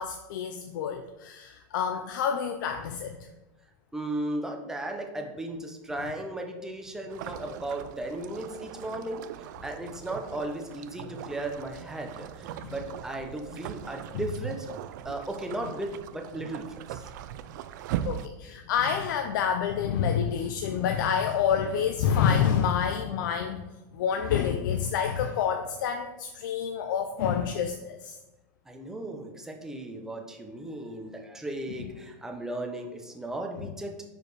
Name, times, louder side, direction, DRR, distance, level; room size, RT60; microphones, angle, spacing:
voice 1, 0.0-3.3 12.5-12.8 14.1-14.2 18.0-23.6 23.9-28.2 31.8-31.9, left 7 dB, 75° left, 6 dB, 0.5 m, -28 dB
voice 2, 3.9-9.2 9.6-14.7 15.0-17.1 28.7-33.9, right 1 dB, 5° right, 2 dB, 0.7 m, -36 dB
sound 1, 7.1-18.3, right 11 dB, 65° right, 0.4 m, -40 dB
5.0 x 4.6 x 4.7 m, 1.0 s
supercardioid pair, 145°, 10 cm